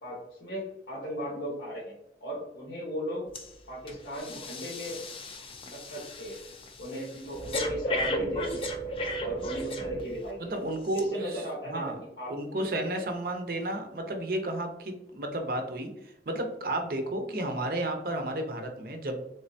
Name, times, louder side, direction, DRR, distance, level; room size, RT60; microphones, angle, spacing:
voice 1, 0.0-1.9 2.2-3.2 3.7-5.0 5.6-6.3 6.8-8.7 9.2-10.5 10.9-12.7, equal, 90° left, -6 dB, 1.1 m, -37 dB
Breathing, 3.3-3.5 3.9-10.3 10.9-11.0, equal, 30° left, 0.4 m, -35 dB
voice 2, 10.4-11.4 11.7-11.9 12.3-19.2, right 1 dB, 55° right, 4 dB, 0.6 m, -32 dB
3.7 x 3.2 x 2.6 m, 0.84 s
head